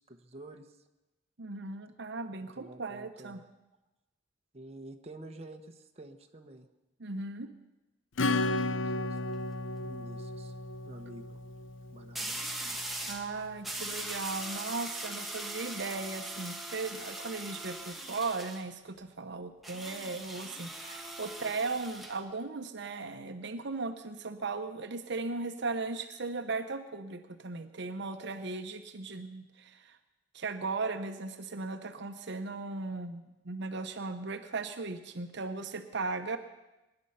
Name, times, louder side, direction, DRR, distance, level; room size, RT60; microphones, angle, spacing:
voice 1, 0.1-0.7 2.5-3.4 4.5-6.7 8.5-9.2 9.8-10.5 10.8-11.4 11.9-12.4, right 2 dB, 35° right, 4 dB, 1.1 m, -49 dB
voice 2, 1.4-3.4 7.0-7.5 13.1-30.0 30.3-36.4, right 3 dB, 65° right, 8 dB, 0.9 m, -37 dB
Acoustic guitar / Strum, 8.2-12.4, left 2 dB, 80° left, 0.7 m, -33 dB
sound 1, 9.0-9.3 12.1-13.3 13.6-18.6 19.6-22.2, right 1 dB, ahead, 1.6 m, -40 dB
23.5 x 10.5 x 5.6 m, 1.0 s
head